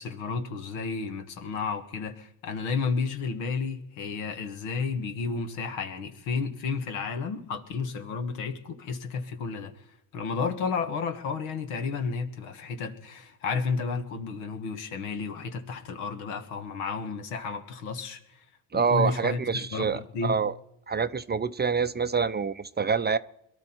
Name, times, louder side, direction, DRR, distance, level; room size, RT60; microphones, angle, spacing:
voice 1, 0.0-9.7 10.1-18.4 18.7-20.4, left 5 dB, 80° left, 7 dB, 1.7 m, -32 dB
voice 2, 18.7-20.5 20.9-23.2, right 5 dB, 20° right, 12 dB, 0.5 m, -26 dB
22.5 x 12.5 x 4.5 m, 0.82 s
hypercardioid pair, 65°, 46 cm